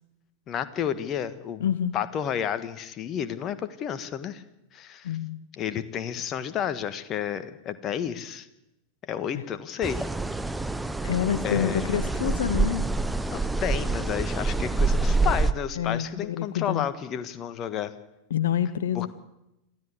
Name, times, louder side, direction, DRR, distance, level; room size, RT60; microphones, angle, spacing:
voice 1, 0.5-1.7 1.9-4.4 4.7-5.1 5.6-8.5 9.0-10.1 11.4-11.9 13.3-17.9 18.9-19.1, left 9 dB, 30° left, 12 dB, 1.5 m, -31 dB
voice 2, 1.6-2.0 5.0-5.5 9.3-9.4 11.0-12.8 15.8-16.9 18.3-19.1, left 9 dB, 60° left, 14 dB, 0.8 m, -27 dB
sound 1, 9.8-15.5, right 3 dB, 5° right, 0.9 m, -26 dB
26.5 x 14.5 x 8.5 m, 0.90 s
figure-of-eight pair, 90°, 0 cm